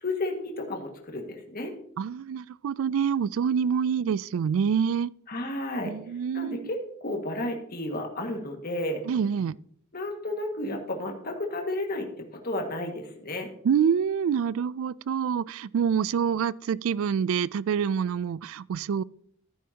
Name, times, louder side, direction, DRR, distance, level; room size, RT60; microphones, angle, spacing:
voice 1, 0.0-1.7 5.3-5.9 6.3-9.0 9.9-12.1 12.4-13.5, left 1 dB, 45° left, 1.8 m, -32 dB
voice 2, 2.0-5.1 5.8-6.7 9.1-9.6 13.6-19.0, right 7 dB, 70° right, 0.3 m, -26 dB
14.0 x 9.4 x 2.8 m
head